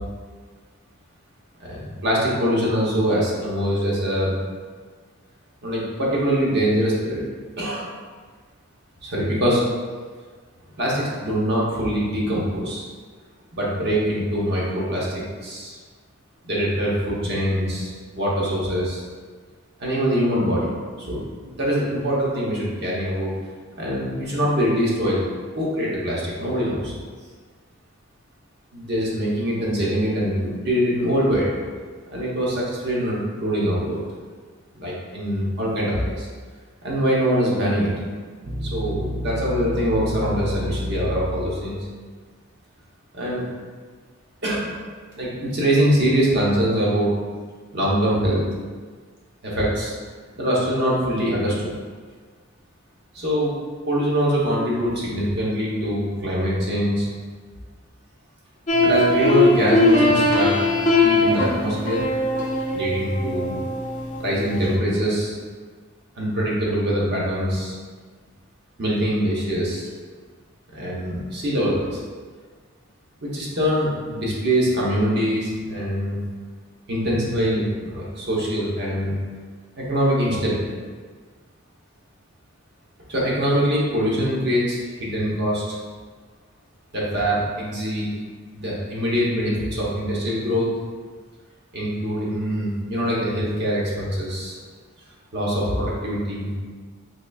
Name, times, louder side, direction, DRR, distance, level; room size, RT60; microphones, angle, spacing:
voice 1, 1.6-4.3 5.6-7.2 7.6-7.9 9.0-9.6 10.8-12.9 13.5-15.7 16.4-19.0 19.8-20.7 21.0-23.3 23.8-25.2 25.5-26.9 28.7-31.5 32.1-34.0 34.8-36.3 36.8-37.9 38.6-41.8 43.1-43.4 44.4-44.7 45.2-47.1 47.7-48.4 49.4-49.9 50.4-51.7 53.1-53.5 53.9-57.1 58.8-60.6 61.0-62.0 62.7-63.6 64.2-65.3 66.2-67.7 68.8-69.9 70.7-72.0 73.2-76.2 76.9-79.2 79.8-80.6 83.1-85.8 86.9-88.1 88.5-90.7 91.7-94.6 95.3-96.5, equal, 50° right, -5 dB, 0.9 m, -23 dB
sound 1, 38.4-41.9, equal, 30° right, 0.3 m, -30 dB
sound 2, 58.7-64.7, left 2 dB, 35° left, 0.5 m, -20 dB
4.0 x 3.2 x 2.3 m, 1.5 s
head